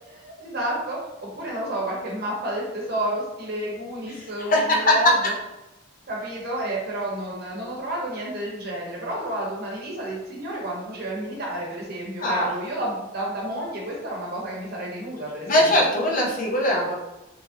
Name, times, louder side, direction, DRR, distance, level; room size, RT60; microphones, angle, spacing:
voice 1, 0.0-5.3 6.1-15.9, right 1 dB, 55° right, -3 dB, 0.8 m, -30 dB
voice 2, 4.4-5.1 12.2-12.5 15.5-16.9, left 1 dB, 45° left, -2 dB, 0.7 m, -20 dB
3.0 x 2.5 x 2.5 m, 0.97 s
head